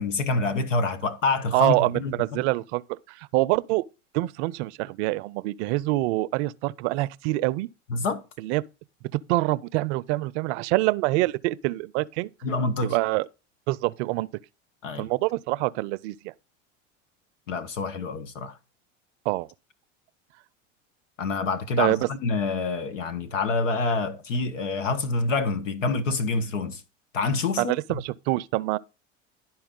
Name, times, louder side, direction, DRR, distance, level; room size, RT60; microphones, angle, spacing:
voice 1, 0.0-2.1 7.9-8.2 12.4-13.0 14.8-15.1 17.5-18.6 21.2-26.8 27.1-27.7, left 3 dB, 90° left, 1.1 m, -27 dB
voice 2, 1.5-3.8 4.1-7.7 8.4-8.6 9.3-12.3 12.8-13.3 13.7-14.3 15.0-16.3 19.3-19.5 21.8-22.1 27.6-28.8, right 20 dB, 65° right, 0.5 m, -25 dB
11.0 x 4.4 x 3.7 m
hypercardioid pair, 80°, 37 cm